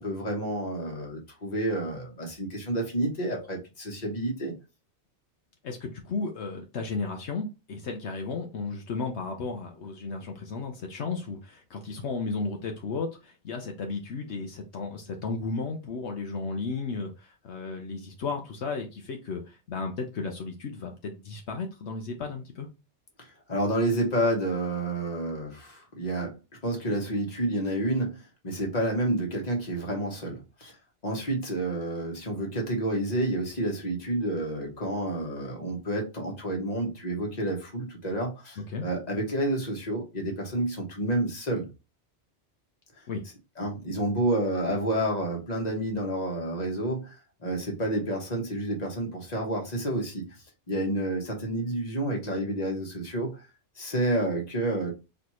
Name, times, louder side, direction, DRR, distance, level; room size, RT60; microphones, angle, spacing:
voice 1, 0.0-4.5 23.2-26.4 26.6-30.7 31.0-41.7 43.6-47.2 47.4-50.4 50.7-53.4 53.8-54.9, right 1 dB, 35° left, 1.3 m, -29 dB
voice 2, 5.6-22.7 38.7-38.8 43.1-43.2, left 4 dB, 75° left, 1.0 m, -34 dB
4.2 x 3.3 x 3.0 m
omnidirectional pair, 1.2 m